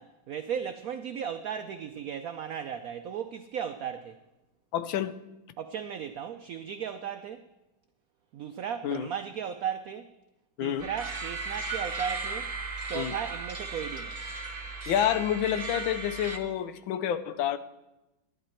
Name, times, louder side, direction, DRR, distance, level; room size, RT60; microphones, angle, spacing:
voice 1, 0.0-4.2 5.6-7.4 8.3-10.1 10.6-12.5 12.9-14.2, right 8 dB, 85° right, 0.7 m, -36 dB
voice 2, 4.7-5.1 8.8-9.1 10.6-10.9 12.9-13.1 14.9-17.6, left 10 dB, 85° left, 1.4 m, -28 dB
sound 1, 10.8-16.4, right 3 dB, 35° right, 0.6 m, -36 dB
11.5 x 11.0 x 4.4 m
omnidirectional pair, 2.1 m